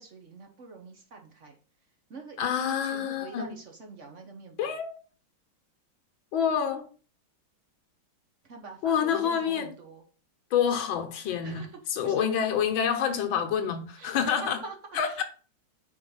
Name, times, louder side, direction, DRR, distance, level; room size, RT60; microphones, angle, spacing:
voice 1, 0.0-1.5 2.1-4.8 8.5-10.0 11.1-11.7 12.0-12.3 14.0-14.7 15.1-15.2, right 4 dB, 45° right, 1.1 m, -45 dB
voice 2, 2.4-3.5 4.6-5.0 6.3-6.9 8.8-9.8 10.5-14.6 14.9-15.2, left 8 dB, 70° left, 1.7 m, -27 dB
5.2 x 4.6 x 5.5 m
omnidirectional pair, 2.3 m